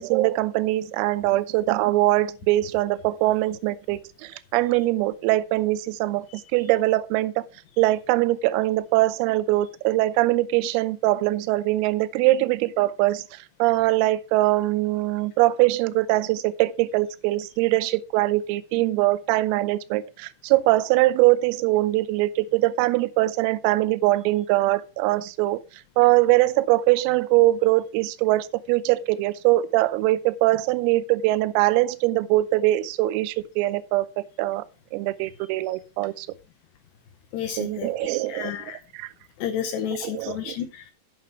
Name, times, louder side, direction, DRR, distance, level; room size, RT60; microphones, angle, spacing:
voice 1, 0.0-7.4 7.8-25.6 26.0-34.6 34.9-36.3 37.6-38.5 38.9-39.1 40.0-40.6, right 17 dB, 85° right, 3.4 m, -22 dB
voice 2, 37.3-38.8 39.4-40.9, left 8 dB, 80° left, 2.5 m, -31 dB
8.7 x 8.1 x 4.6 m
omnidirectional pair, 5.9 m